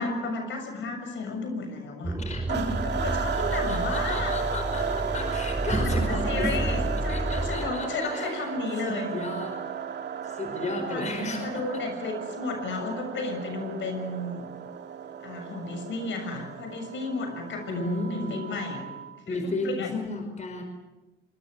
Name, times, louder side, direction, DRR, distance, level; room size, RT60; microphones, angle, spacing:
voice 1, 0.0-2.2 2.8-4.3 5.7-9.2 10.6-11.1 11.4-14.5 15.2-18.9 19.3-20.0, left 3 dB, 75° left, 5 dB, 6.9 m, -33 dB
sound 1, 2.0-7.7, right 1 dB, 15° right, 1.8 m, -30 dB
voice 2, 2.2-2.8 3.3-6.8 7.1-8.3 8.8-9.6 10.3-11.6 17.7-18.4 19.3-20.6, left 2 dB, 35° left, 5 dB, 5.0 m, -34 dB
sound 2, 2.5-19.2, right 7 dB, 60° right, 2.5 m, -34 dB
25.5 x 21.0 x 8.0 m, 1.1 s
cardioid pair, 90°, 20 cm